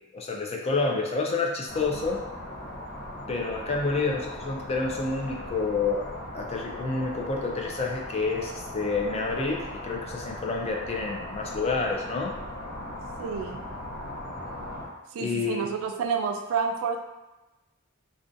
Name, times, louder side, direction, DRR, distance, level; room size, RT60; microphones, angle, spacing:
voice 1, 0.1-2.2 3.3-6.1 6.3-12.4 15.2-15.7, left 3 dB, 30° left, 0 dB, 0.4 m, -29 dB
sound 1, 1.7-14.9, left 1 dB, 55° left, 0.8 m, -39 dB
voice 2, 13.2-13.6 15.1-17.0, right 5 dB, 75° right, 5 dB, 0.3 m, -29 dB
2.5 x 2.2 x 2.5 m, 1.1 s
head